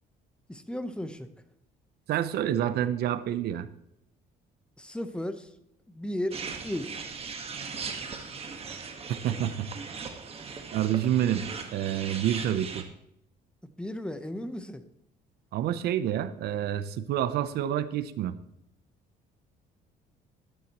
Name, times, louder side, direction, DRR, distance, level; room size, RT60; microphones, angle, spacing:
voice 1, 0.5-1.3 4.8-5.5 5.9-7.0 13.8-14.8, left 1 dB, 5° left, 10 dB, 0.9 m, -35 dB
voice 2, 2.1-3.7 9.2-9.7 10.7-11.4 11.7-12.8 15.5-18.3, right 11 dB, 70° right, 13 dB, 0.7 m, -28 dB
sound 1, 6.3-12.8, right 5 dB, 35° right, 1.5 m, -39 dB
13.5 x 10.5 x 3.0 m, 0.78 s
cardioid pair, 110°, 17 cm